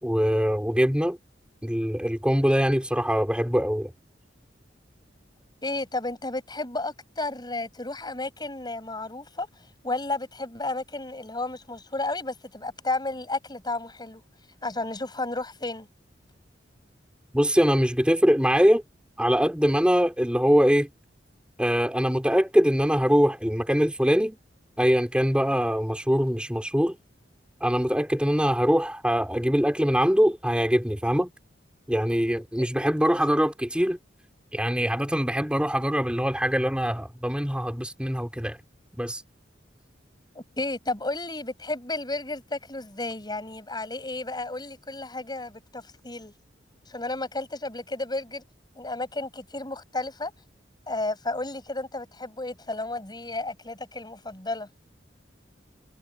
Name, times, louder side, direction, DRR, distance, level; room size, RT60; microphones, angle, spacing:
voice 1, 0.0-1.2 1.6-3.9 17.3-18.8 19.2-20.9 21.6-24.4 24.8-27.0 27.6-31.3 31.9-34.0 34.5-38.6 39.0-39.2, equal, 5° right, 3.7 m, -23 dB
voice 2, 5.6-9.5 9.8-14.2 14.6-15.9 32.6-32.7 40.3-46.3 46.9-48.4 48.7-50.3 50.9-54.7, left 2 dB, 25° left, 7.7 m, -32 dB
head